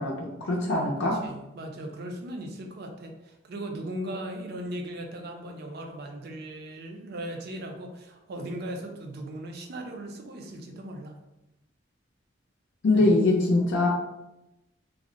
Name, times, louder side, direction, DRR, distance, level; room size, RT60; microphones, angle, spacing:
voice 1, 0.0-1.2 12.8-13.9, left 2 dB, 70° left, -2 dB, 0.5 m, -23 dB
voice 2, 1.0-11.2 12.9-13.1, right 1 dB, 55° right, 3 dB, 0.4 m, -38 dB
2.4 x 2.0 x 3.7 m, 0.93 s
head